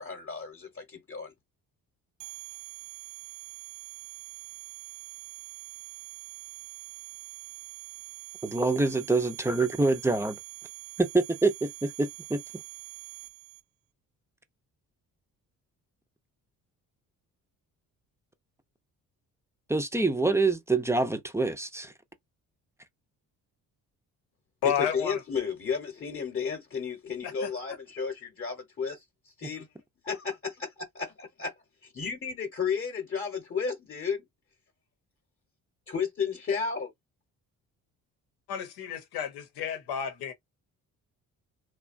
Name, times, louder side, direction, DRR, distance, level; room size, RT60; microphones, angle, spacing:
voice 1, 0.0-1.3 24.6-29.7 30.0-31.5 31.8-34.2 35.9-36.9, left 6 dB, 35° left, 0.9 m, -33 dB
sound 1, 2.2-13.6, right 18 dB, 60° right, 0.6 m, -45 dB
voice 2, 8.4-10.4 11.0-12.4 19.7-21.9 29.4-29.5, right 3 dB, 5° right, 0.5 m, -26 dB
voice 3, 24.6-25.2 27.4-27.5 38.5-40.3, left 8 dB, 90° left, 0.9 m, -31 dB
2.8 x 2.2 x 2.5 m
supercardioid pair, 70°, 37 cm